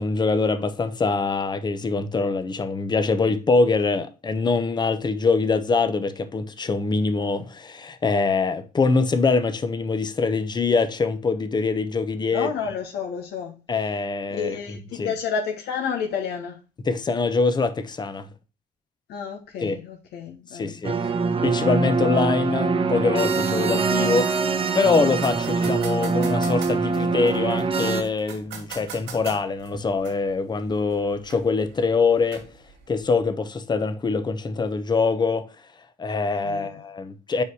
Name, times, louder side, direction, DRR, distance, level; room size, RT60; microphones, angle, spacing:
voice 1, 0.0-12.5 13.7-15.1 16.8-18.3 19.6-19.8 20.5-21.0 21.4-32.4 32.9-35.5 36.0-37.4, left 4 dB, 25° left, 0.9 m, -24 dB
voice 2, 12.3-13.5 14.3-16.6 19.1-20.8 36.4-36.8, left 6 dB, 75° left, 1.5 m, -30 dB
sound 1, 20.8-28.0, right 4 dB, 35° right, 1.0 m, -23 dB
sound 2, 23.2-33.2, right 5 dB, 85° right, 2.5 m, -44 dB
5.5 x 4.9 x 4.7 m
cardioid pair, 110°, 17 cm